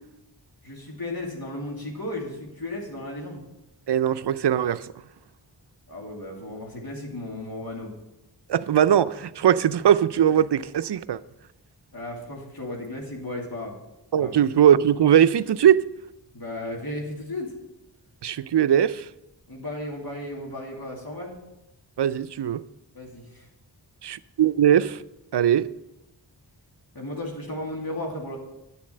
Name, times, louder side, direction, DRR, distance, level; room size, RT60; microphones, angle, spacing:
voice 1, 0.6-3.4 5.9-7.9 11.9-13.7 14.2-14.4 16.3-17.5 19.5-21.4 22.9-23.5 26.9-28.4, left 1 dB, 55° left, 2.5 m, -34 dB
voice 2, 3.9-4.9 8.5-11.2 14.1-15.8 18.2-19.1 22.0-22.6 24.0-25.0 25.3-25.7, right 9 dB, 70° right, 0.5 m, -20 dB
10.0 x 7.2 x 6.6 m
wide cardioid pair, 55°, 43 cm